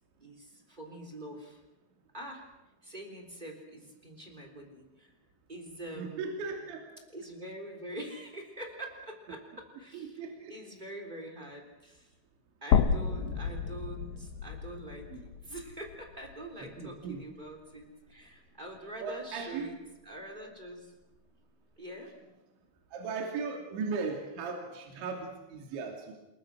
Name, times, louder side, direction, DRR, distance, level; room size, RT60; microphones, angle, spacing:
voice 1, 0.2-1.6 2.1-2.5 2.8-5.1 5.5-6.5 7.1-12.1 12.6-20.9 21.8-22.1, right 1 dB, 10° right, 2 dB, 2.9 m, -45 dB
voice 2, 6.0-6.8 9.9-10.5 13.1-13.3 15.1-15.2 16.6-17.2 19.0-19.7 22.9-26.1, right 4 dB, 70° right, 1 dB, 4.9 m, -37 dB
sound 1, 12.7-16.9 17.2-17.3 18.7-18.8, left 7 dB, 70° left, 2.2 m, -31 dB
27.5 x 22.5 x 6.3 m, 0.99 s
omnidirectional pair, 5.7 m